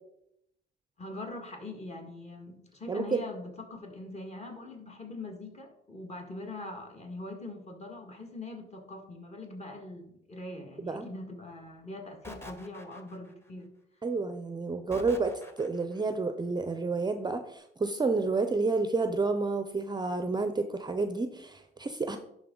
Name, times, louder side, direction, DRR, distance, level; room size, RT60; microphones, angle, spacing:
voice 1, 1.0-13.7, left 2 dB, 35° left, 2 dB, 1.7 m, -42 dB
voice 2, 2.9-3.2 10.8-11.1 14.0-22.2, right 3 dB, 20° right, 8 dB, 0.5 m, -30 dB
sound 1, 12.2-13.5 14.9-16.0, left 1 dB, 10° left, 1.0 m, -46 dB
11.0 x 3.8 x 3.8 m, 0.79 s
cardioid pair, 90°, 20 cm